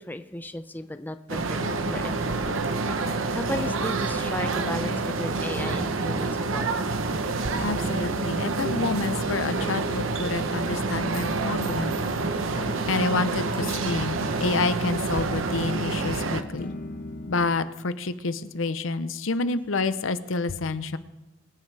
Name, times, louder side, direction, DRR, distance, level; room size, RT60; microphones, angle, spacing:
voice 1, 0.0-1.6 1.9-2.6 2.9-3.0 3.3-6.7 16.6-16.7, left 1 dB, 10° left, 9 dB, 0.5 m, -35 dB
sound 1, 1.3-16.4, right 3 dB, 90° right, 0.9 m, -28 dB
sound 2, 1.6-17.6, left 2 dB, 50° left, 1.1 m, -40 dB
voice 2, 7.6-12.0 12.9-16.7 17.3-21.0, left 3 dB, 85° left, 12 dB, 0.7 m, -28 dB
23.5 x 9.6 x 3.4 m, 1.0 s
head